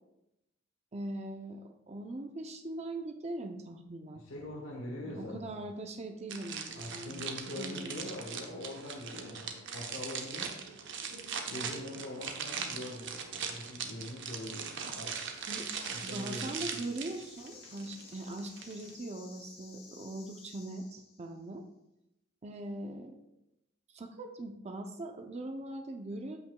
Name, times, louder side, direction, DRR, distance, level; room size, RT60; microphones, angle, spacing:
voice 1, 0.9-4.2 5.0-7.1 7.6-7.9 15.5-15.7 16.0-21.6 22.4-23.2 23.9-26.4, right 1 dB, 35° right, 5 dB, 0.6 m, -41 dB
voice 2, 4.1-5.6 6.8-10.5 11.4-15.2 15.9-16.7, left 1 dB, 70° left, -3 dB, 1.2 m, -43 dB
sound 1, 6.3-18.9, right 6 dB, 65° right, 0.9 m, -40 dB
sound 2, 14.7-21.5, left 5 dB, 50° left, 1.1 m, -55 dB
13.5 x 5.8 x 2.3 m, 0.88 s
head